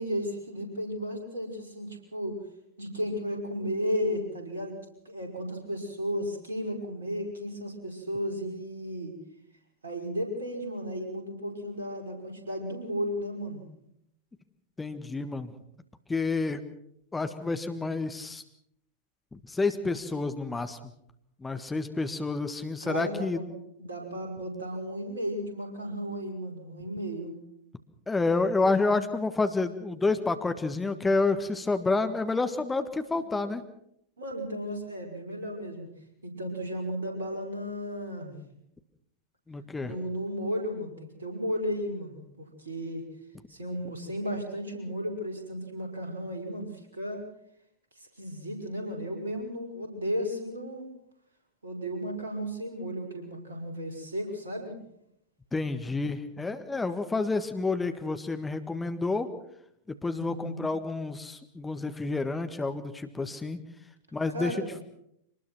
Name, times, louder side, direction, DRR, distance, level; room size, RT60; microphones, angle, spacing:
voice 1, 0.0-2.4 2.8-4.8 5.1-9.1 9.8-13.6 22.8-23.5 23.8-27.4 34.2-35.9 36.2-38.4 39.8-43.0 43.5-47.2 48.2-50.9 51.6-54.8 60.1-60.7 64.3-64.8, equal, 70° right, 3 dB, 5.5 m, -34 dB
voice 2, 14.8-15.5 16.1-16.6 17.1-18.4 19.3-20.8 21.4-23.4 28.1-33.6 39.5-39.9 55.5-59.3 59.9-63.6 64.1-64.8, left 3 dB, 10° left, 8 dB, 1.6 m, -29 dB
24.5 x 19.5 x 6.1 m, 0.74 s
figure-of-eight pair, 90°, 0 cm